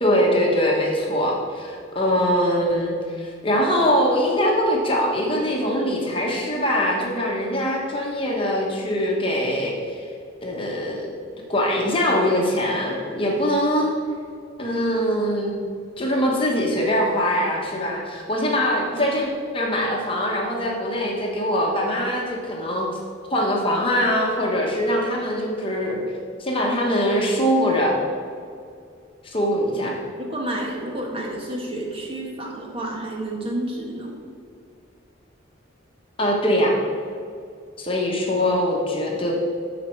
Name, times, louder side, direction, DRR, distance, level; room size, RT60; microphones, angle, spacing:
voice 1, 0.0-10.0 10.4-11.1 11.5-13.9 14.6-15.6 16.0-19.3 19.5-22.9 23.3-26.0 26.4-27.9 29.2-30.0 36.2-36.7 37.8-39.3, equal, 25° left, -1 dB, 1.2 m, -22 dB
voice 2, 30.2-34.1, right 1 dB, 30° right, -1 dB, 1.5 m, -30 dB
13.5 x 5.2 x 4.5 m, 2.4 s
head